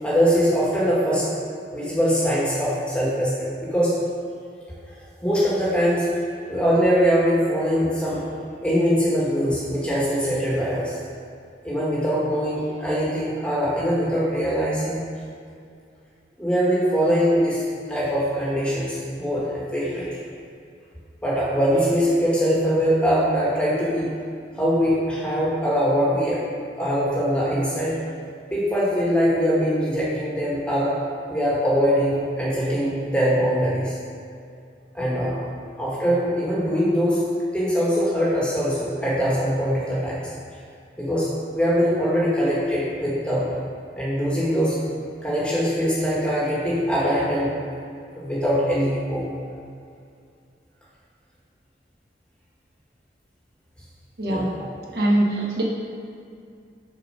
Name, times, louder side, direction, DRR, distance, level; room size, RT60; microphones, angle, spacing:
voice 1, 0.0-1.3 1.7-3.9 4.9-6.1 6.5-8.2 8.6-11.0 11.6-15.0 16.4-17.6 17.9-20.3 21.2-24.1 24.5-26.4 26.8-28.0 28.5-30.9 31.3-33.9 34.9-35.4 35.8-37.2 37.5-40.3 41.0-43.6 44.0-44.8 45.2-47.5 48.1-49.3 54.2-54.6, equal, 5° left, -7 dB, 1.5 m, -22 dB
voice 2, 54.2-54.5 54.8-55.6, right 1 dB, 60° right, -2 dB, 0.9 m, -22 dB
6.9 x 4.2 x 5.5 m, 2.3 s
head